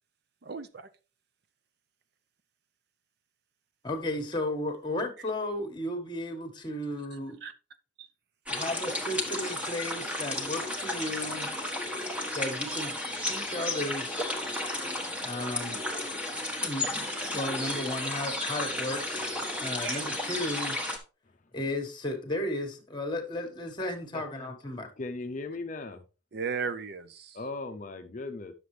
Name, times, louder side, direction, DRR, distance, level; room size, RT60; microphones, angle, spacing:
voice 1, 0.4-0.9 7.4-7.5 8.0-8.1 19.8-20.1 26.3-27.4, right 5 dB, 55° right, 0.6 m, -36 dB
voice 2, 3.8-7.4 8.5-11.5 12.3-12.9 13.2-14.2 15.2-15.8 16.6-19.2 19.6-20.8 21.5-24.9, left 1 dB, 25° left, 1.5 m, -34 dB
sound 1, 8.5-21.0, left 1 dB, 5° right, 1.3 m, -33 dB
voice 3, 25.0-26.0 27.3-28.5, left 3 dB, 40° left, 0.6 m, -37 dB
9.6 x 6.7 x 3.2 m
head